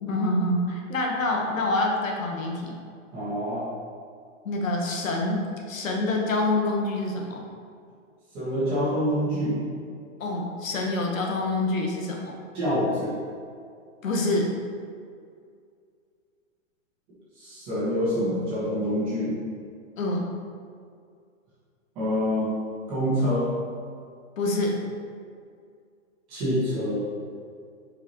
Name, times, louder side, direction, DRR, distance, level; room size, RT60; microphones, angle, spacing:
voice 1, 0.0-2.8 4.4-7.4 10.2-12.3 14.0-14.5 20.0-20.3 24.4-24.8, left 2 dB, 75° left, 0 dB, 1.3 m, -26 dB
voice 2, 3.1-3.6 8.3-9.6 12.5-13.1 17.4-19.3 21.9-22.5 22.9-23.5 26.3-27.0, equal, 15° right, -11 dB, 1.5 m, -26 dB
6.9 x 4.9 x 3.0 m, 2.3 s
hypercardioid pair, 175°, 40 cm